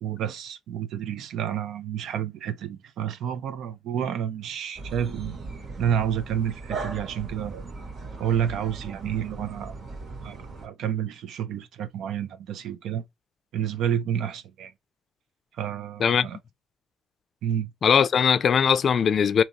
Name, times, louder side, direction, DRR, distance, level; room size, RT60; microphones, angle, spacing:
voice 1, 0.0-5.4 5.8-7.6 8.2-9.7 10.2-13.0 13.5-14.7 15.6-16.4 17.4-17.7, right 9 dB, 80° right, 0.5 m, -29 dB
sound 1, 4.8-10.7, right 3 dB, 55° right, 1.5 m, -38 dB
voice 2, 17.8-19.4, left 7 dB, 55° left, 0.4 m, -20 dB
3.8 x 2.8 x 2.8 m
cardioid pair, 90°, 0 cm